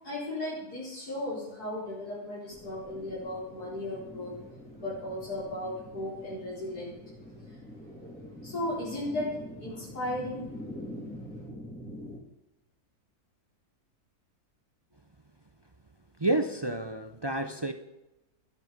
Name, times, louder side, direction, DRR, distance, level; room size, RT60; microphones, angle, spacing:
voice 1, 0.0-4.3 4.8-7.0 7.5-7.6 8.4-9.3 9.6-10.6, left 1 dB, 80° left, -8 dB, 5.1 m, -36 dB
sound 1, 2.5-12.2, left 1 dB, 5° left, 1.9 m, -45 dB
voice 2, 16.2-17.7, right 2 dB, 25° right, 8 dB, 0.5 m, -29 dB
14.0 x 14.0 x 5.3 m, 0.99 s
omnidirectional pair, 1.6 m